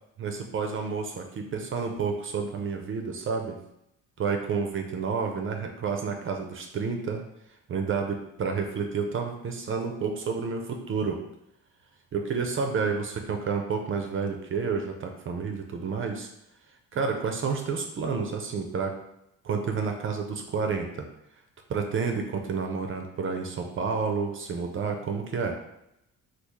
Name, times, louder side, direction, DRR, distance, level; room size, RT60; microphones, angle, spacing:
voice 1, 0.2-3.6 4.2-7.2 7.7-11.2 12.1-16.3 16.9-18.9 19.4-21.1 21.7-25.6, right 5 dB, 40° right, 4 dB, 0.4 m, -30 dB
3.0 x 2.4 x 3.5 m, 0.83 s
cardioid pair, 105°, 34 cm